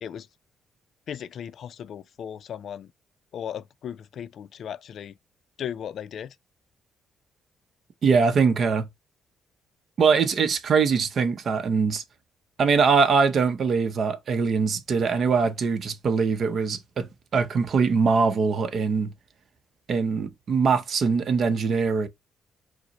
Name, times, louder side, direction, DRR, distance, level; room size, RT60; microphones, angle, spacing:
voice 1, 1.1-2.9 3.3-5.1 5.6-6.3, left 9 dB, 65° left, 0.3 m, -36 dB
voice 2, 8.0-8.9 10.0-12.0 12.6-19.1 19.9-22.1, right 5 dB, 55° right, 0.7 m, -22 dB
4.7 x 2.0 x 4.0 m
cardioid pair, 90°, 0 cm